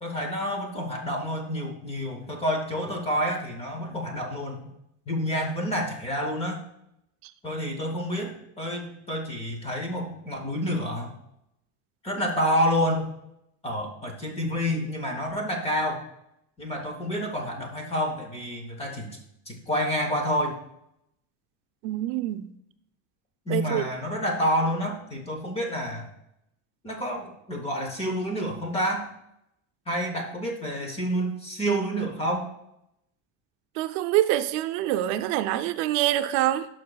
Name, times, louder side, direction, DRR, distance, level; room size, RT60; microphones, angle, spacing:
voice 1, 0.0-4.6 5.1-6.6 7.4-11.1 12.0-13.1 13.6-16.0 16.6-19.2 19.5-20.6 23.5-26.1 26.8-29.1 29.9-32.5, equal, 15° left, 3 dB, 0.6 m, -28 dB
voice 2, 21.8-22.5 23.5-23.8 33.8-36.7, right 14 dB, 80° right, 9 dB, 0.6 m, -25 dB
11.5 x 5.9 x 2.3 m, 0.81 s
cardioid pair, 180°, 46 cm